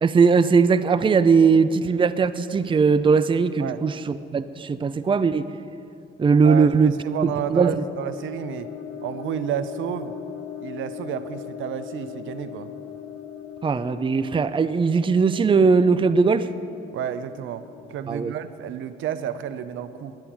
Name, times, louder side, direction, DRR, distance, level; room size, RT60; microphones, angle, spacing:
voice 1, 0.0-5.5 6.2-6.9 7.2-7.8 13.6-16.5 18.1-18.3, right 5 dB, 25° right, 14 dB, 0.5 m, -19 dB
sound 1, 6.1-18.0, left 9 dB, 80° left, 1.4 m, -40 dB
voice 2, 6.4-8.7 9.0-10.1 10.6-12.7 16.9-20.2, right 9 dB, 80° right, 13 dB, 0.7 m, -31 dB
10.5 x 9.5 x 10.0 m, 2.5 s
cardioid pair, 90°, 20 cm